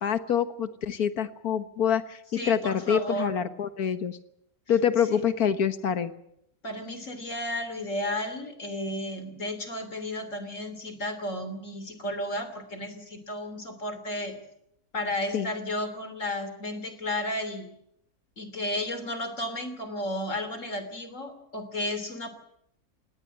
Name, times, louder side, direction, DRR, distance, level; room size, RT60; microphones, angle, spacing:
voice 1, 0.0-4.2 4.7-6.1 15.3-15.5, left 8 dB, 85° left, 11 dB, 1.8 m, -26 dB
voice 2, 2.3-3.4 5.1-5.2 6.6-14.4 14.9-17.7 18.4-22.3, left 1 dB, 60° left, 10 dB, 3.5 m, -33 dB
19.0 x 18.0 x 9.9 m, 0.75 s
omnidirectional pair, 1.5 m